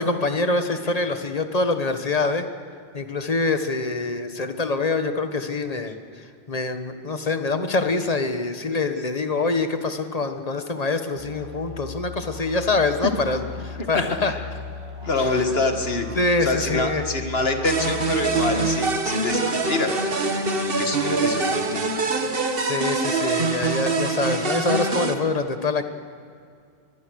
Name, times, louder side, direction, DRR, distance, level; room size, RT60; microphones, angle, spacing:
voice 1, 0.0-2.5 2.9-5.9 6.5-14.3 16.2-17.0 22.4-25.9, left 3 dB, 35° left, 7 dB, 1.4 m, -25 dB
sound 1, 11.2-18.8, left 4 dB, 30° right, 2.2 m, -37 dB
voice 2, 13.8-14.5 15.0-16.1 16.4-21.9, left 3 dB, 65° left, 5 dB, 2.1 m, -26 dB
sound 2, 17.6-25.1, right 3 dB, 60° right, 1.6 m, -24 dB
25.0 x 21.0 x 6.4 m, 2.3 s
omnidirectional pair, 1.1 m